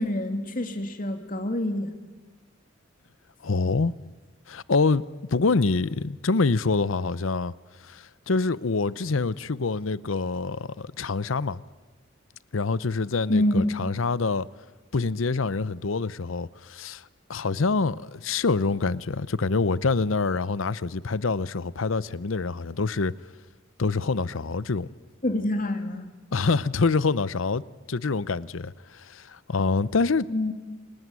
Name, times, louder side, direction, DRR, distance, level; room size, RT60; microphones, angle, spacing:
voice 1, 0.0-1.9 13.3-13.7 25.2-26.1 30.3-30.5, left 1 dB, 45° left, 2.7 m, -26 dB
voice 2, 3.4-3.9 4.5-5.0 5.3-7.5 7.8-11.6 12.5-14.5 14.9-17.0 17.3-23.1 23.8-24.9 26.3-27.6 27.9-30.3, left 4 dB, 80° left, 0.7 m, -26 dB
28.5 x 20.0 x 9.7 m
head